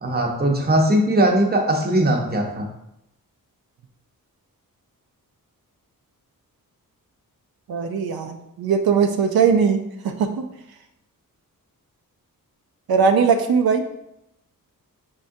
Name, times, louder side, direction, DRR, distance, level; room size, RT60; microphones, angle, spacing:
voice 1, 0.0-2.7, right 1 dB, 25° right, 2 dB, 0.7 m, -19 dB
voice 2, 7.7-10.4 12.9-13.8, right 6 dB, 80° right, 6 dB, 0.5 m, -20 dB
5.4 x 3.6 x 2.6 m, 0.83 s
wide cardioid pair, 145°, 36 cm